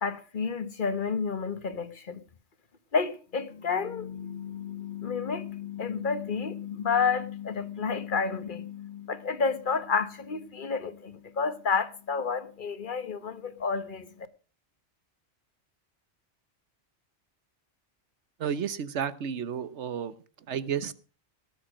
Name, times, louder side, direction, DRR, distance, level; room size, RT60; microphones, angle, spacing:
voice 1, 0.0-2.2 2.9-14.3, left 5 dB, 45° left, 1.3 m, -30 dB
voice 2, 18.4-20.1 20.5-20.9, right 8 dB, 75° right, 1.2 m, -31 dB
19.0 x 7.1 x 6.2 m
omnidirectional pair, 1.2 m